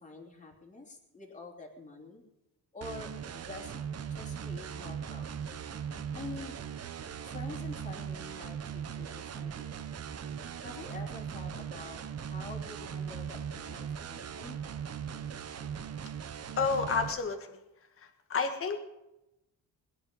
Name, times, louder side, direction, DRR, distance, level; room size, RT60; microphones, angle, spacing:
voice 1, 0.0-2.2 2.7-3.8 4.1-5.3 6.1-6.5 7.3-9.8 10.6-14.6, left 3 dB, 20° left, -1 dB, 3.2 m, -47 dB
sound 1, 2.8-17.1, right 7 dB, 40° right, 0.9 m, -39 dB
voice 2, 16.6-17.6 18.3-18.8, left 5 dB, 35° left, 6 dB, 1.6 m, -30 dB
21.5 x 10.5 x 5.4 m, 0.92 s
cardioid pair, 155°, 38 cm